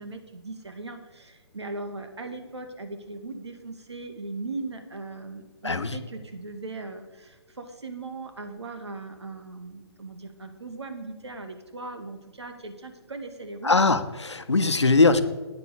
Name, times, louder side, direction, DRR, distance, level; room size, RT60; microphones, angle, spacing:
voice 1, 0.0-13.7, right 3 dB, 75° right, 7 dB, 2.0 m, -38 dB
voice 2, 5.6-6.0 13.6-15.2, left 3 dB, 85° left, 10 dB, 1.1 m, -21 dB
9.3 x 8.6 x 7.0 m, 1.3 s
figure-of-eight pair, 130°, 14 cm